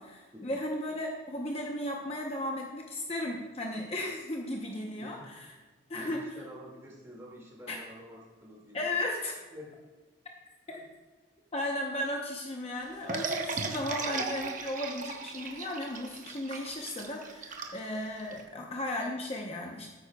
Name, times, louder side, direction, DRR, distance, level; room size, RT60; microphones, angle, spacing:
voice 1, 0.0-5.5 5.9-6.2 7.7-7.8 8.7-9.4 11.5-19.9, left 1 dB, 30° left, 0 dB, 0.8 m, -35 dB
voice 2, 5.9-8.9 9.5-9.7 10.7-10.9, equal, 15° right, -3 dB, 2.1 m, -48 dB
sound 1, 13.1-18.4, right 4 dB, 40° right, 0.9 m, -36 dB
13.0 x 9.8 x 2.3 m, 1.3 s
head